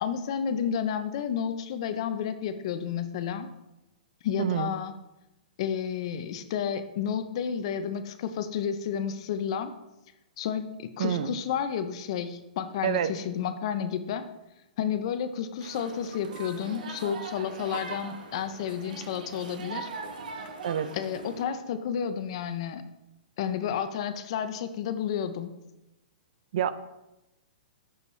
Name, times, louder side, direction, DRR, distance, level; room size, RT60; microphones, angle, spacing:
voice 1, 0.0-3.5 4.2-4.9 5.6-9.7 10.4-14.2 14.8-19.9 20.9-22.8 23.4-25.5, left 8 dB, 40° left, 10 dB, 0.4 m, -31 dB
voice 2, 4.4-4.7 11.0-11.4 12.8-13.1 20.6-20.9 26.5-26.7, right 9 dB, 50° right, 13 dB, 0.3 m, -27 dB
sound 1, 15.6-21.4, right 4 dB, 65° right, 0.9 m, -41 dB
6.2 x 5.3 x 3.1 m, 0.96 s
hypercardioid pair, 170°, 5 cm